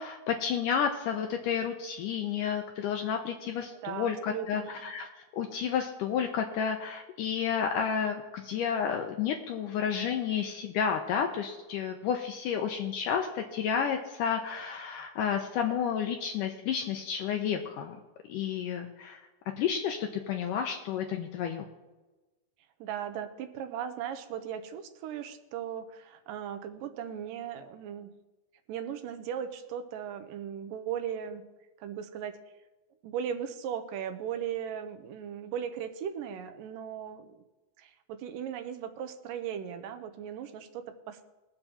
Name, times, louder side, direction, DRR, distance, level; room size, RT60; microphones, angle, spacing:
voice 1, 0.0-18.0 18.3-19.2 19.6-21.6, left 7 dB, 80° left, 3 dB, 1.9 m, -31 dB
voice 2, 3.8-4.9 22.8-28.1 28.7-31.5 31.8-32.4 33.0-37.4 37.8-41.2, right 8 dB, 75° right, 8 dB, 2.2 m, -37 dB
22.0 x 7.8 x 2.9 m, 1.2 s
omnidirectional pair, 4.5 m